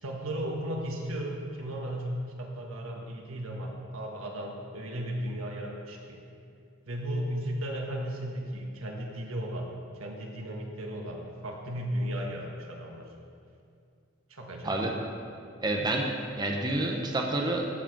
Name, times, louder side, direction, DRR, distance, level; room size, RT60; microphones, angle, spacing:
voice 1, 0.0-6.2 6.9-9.7 10.0-13.1 14.3-14.8, right 1 dB, 85° right, 0 dB, 1.6 m, -35 dB
voice 2, 15.6-16.1 16.4-17.7, right 2 dB, 20° right, 0 dB, 0.9 m, -28 dB
14.5 x 4.9 x 6.0 m, 2.4 s
head